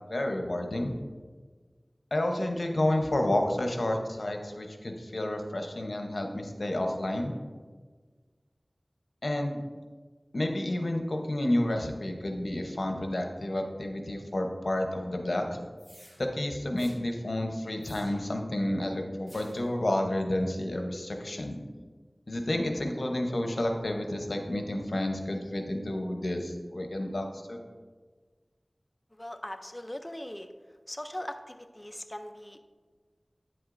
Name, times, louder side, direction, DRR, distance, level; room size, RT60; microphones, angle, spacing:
voice 1, 0.1-0.9 2.1-7.3 9.2-9.6 10.3-15.6 16.2-21.6 22.3-27.6, left 1 dB, 85° left, 3 dB, 0.8 m, -30 dB
sound 1, 15.8-16.2 16.8-17.0 17.8-18.4 19.3-19.7, equal, 10° right, 2.2 m, -53 dB
voice 2, 29.2-30.5 30.9-32.6, left 1 dB, 25° left, 7 dB, 0.4 m, -40 dB
9.0 x 7.8 x 2.5 m, 1.4 s
wide cardioid pair, 45°, 0 cm